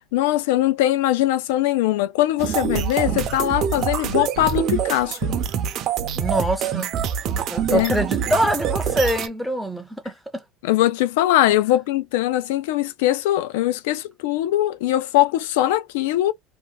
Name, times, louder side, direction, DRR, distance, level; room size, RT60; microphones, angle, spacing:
voice 1, 0.1-5.4 7.7-8.0 10.6-16.3, left 14 dB, 90° left, 0.4 m, -21 dB
sound 1, 2.4-9.3, right 8 dB, 45° right, 0.5 m, -25 dB
voice 2, 6.2-6.9 7.5-10.4, right 1 dB, ahead, 0.5 m, -24 dB
2.7 x 2.2 x 3.3 m
cardioid pair, 140°, 0 cm